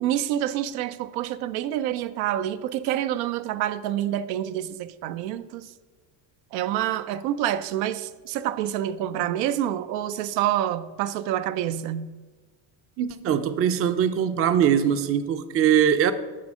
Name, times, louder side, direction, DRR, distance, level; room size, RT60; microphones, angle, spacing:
voice 1, 0.0-5.7 6.5-12.1, right 11 dB, 85° right, 0.6 m, -27 dB
voice 2, 13.0-16.1, right 9 dB, 30° right, 0.5 m, -22 dB
10.0 x 4.2 x 6.2 m
supercardioid pair, 115°, 48 cm